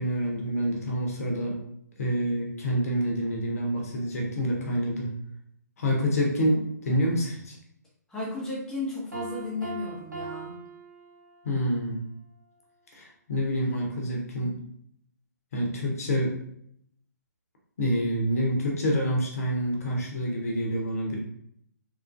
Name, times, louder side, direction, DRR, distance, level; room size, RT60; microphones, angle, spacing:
voice 1, 0.0-1.6 2.0-5.1 5.8-7.5 11.4-12.0 12.9-14.6 15.5-16.3 17.8-21.2, equal, 55° left, -1 dB, 0.8 m, -27 dB
voice 2, 8.1-10.5, left 2 dB, 5° left, -6 dB, 0.8 m, -34 dB
Piano, 9.1-11.7, right 3 dB, 85° right, 0.7 m, -40 dB
3.1 x 2.4 x 2.4 m, 0.70 s
figure-of-eight pair, 135°, 10 cm